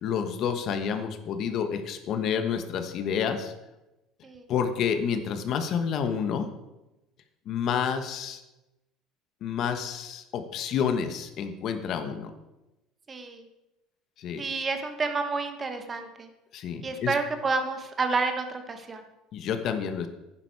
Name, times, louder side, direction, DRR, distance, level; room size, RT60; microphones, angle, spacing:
voice 1, 0.0-3.5 4.5-6.5 7.5-8.4 9.4-12.3 14.2-14.4 16.5-17.1 19.3-20.1, left 7 dB, 50° left, 8 dB, 1.2 m, -29 dB
voice 2, 13.1-13.4 14.4-16.3 16.8-19.0, right 4 dB, 25° right, 7 dB, 1.2 m, -29 dB
11.0 x 10.0 x 4.7 m, 0.98 s
cardioid pair, 135°, 0 cm